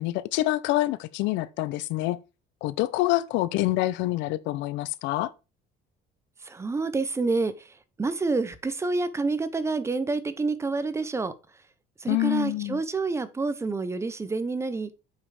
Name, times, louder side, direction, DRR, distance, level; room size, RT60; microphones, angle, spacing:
voice 1, 0.0-2.2 2.6-5.3 12.1-12.8, left 17 dB, 85° left, 0.7 m, -26 dB
voice 2, 6.4-11.3 12.0-14.9, right 3 dB, 15° right, 0.7 m, -28 dB
8.1 x 5.5 x 4.8 m
cardioid pair, 155°, 19 cm